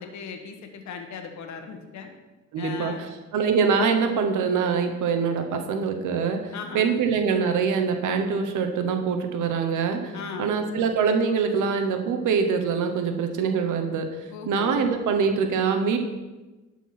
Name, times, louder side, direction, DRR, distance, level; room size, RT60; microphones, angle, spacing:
voice 1, 0.0-2.1 2.6-3.0 6.5-7.0 10.1-10.6 14.3-14.8, left 6 dB, 70° left, 4 dB, 1.3 m, -37 dB
voice 2, 2.5-3.1 3.3-6.4 6.7-10.1 10.4-14.1 14.5-16.0, right 5 dB, 80° right, 5 dB, 1.1 m, -24 dB
11.5 x 4.5 x 5.9 m, 1.1 s
cardioid pair, 90°, 30 cm